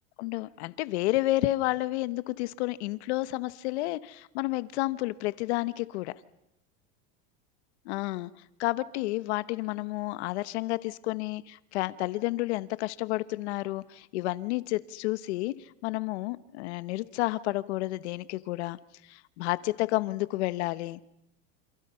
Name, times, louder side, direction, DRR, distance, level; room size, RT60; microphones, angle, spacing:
voice 1, 0.2-6.1 7.8-8.3 8.6-18.8 19.1-21.0, left 18 dB, 60° left, 16 dB, 1.1 m, -30 dB
28.5 x 27.5 x 5.7 m, 0.84 s
supercardioid pair, 160°, 37 cm